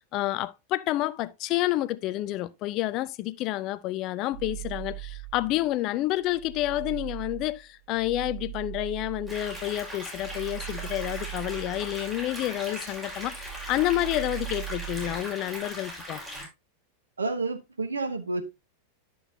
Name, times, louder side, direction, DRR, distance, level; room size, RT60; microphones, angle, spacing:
voice 1, 0.0-16.2, left 16 dB, 40° left, 0.4 m, -29 dB
sound 1, 4.3-5.8 6.2-12.7 13.0-15.3, right 30 dB, 50° right, 0.9 m, -40 dB
sound 2, 9.3-16.5, equal, 5° right, 4.3 m, -39 dB
voice 2, 17.2-18.4, right 3 dB, 75° right, 1.1 m, -30 dB
11.0 x 6.1 x 2.7 m
figure-of-eight pair, 90°, 0 cm